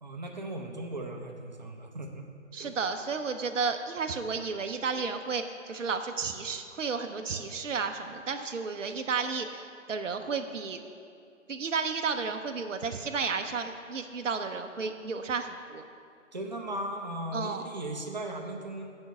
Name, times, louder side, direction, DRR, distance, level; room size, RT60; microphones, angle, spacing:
voice 1, 0.0-2.2 2.6-2.7 16.3-18.9, right 1 dB, 35° right, 2 dB, 0.7 m, -37 dB
voice 2, 2.5-10.8 11.5-15.9 17.3-17.7, right 5 dB, 70° right, 6 dB, 0.6 m, -32 dB
7.3 x 5.2 x 6.7 m, 2.5 s
figure-of-eight pair, 150°, 38 cm